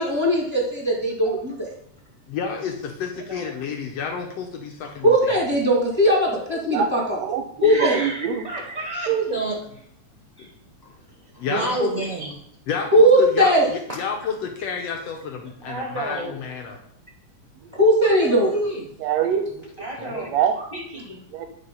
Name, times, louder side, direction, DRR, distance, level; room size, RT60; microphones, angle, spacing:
voice 1, 0.0-1.7 5.0-7.2 7.6-7.9 12.9-13.7 17.7-18.5, right 1 dB, 10° right, -2 dB, 1.8 m, -19 dB
voice 2, 2.3-5.4 11.4-11.9 12.7-16.8 20.0-20.2, left 6 dB, 70° left, 2 dB, 1.8 m, -30 dB
voice 3, 3.2-3.5 7.6-8.1 8.4-9.1 10.4-10.5 12.0-12.3 15.4-16.4 17.7-17.8 19.8-20.4 20.7-21.2, right 1 dB, 10° left, -1 dB, 1.4 m, -33 dB
voice 4, 6.5-6.9 7.2-8.1 17.6-17.7 19.0-19.6 20.2-20.8 21.3-21.5, right 8 dB, 80° right, 6 dB, 1.7 m, -25 dB
voice 5, 9.1-9.8 11.5-12.3 14.2-14.3 18.0-18.8 20.6-20.7, right 4 dB, 50° right, -1 dB, 1.0 m, -26 dB
10.5 x 3.8 x 5.4 m, 0.68 s
omnidirectional pair, 3.4 m